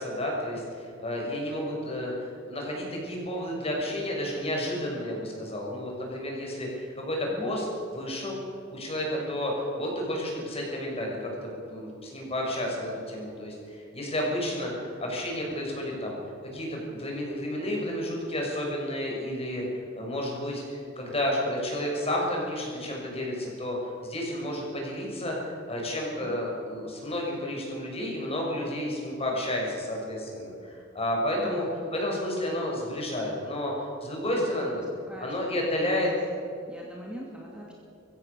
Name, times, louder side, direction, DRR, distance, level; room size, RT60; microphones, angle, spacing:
voice 1, 0.0-7.7 7.9-8.4 8.7-16.2 16.5-31.7 31.9-34.9 35.2-36.1, left 1 dB, 30° left, -1 dB, 6.4 m, -31 dB
voice 2, 31.4-31.9 34.3-34.7 35.1-35.8 36.7-37.7, equal, 5° right, -3 dB, 2.6 m, -43 dB
23.0 x 16.0 x 7.0 m, 2.6 s
head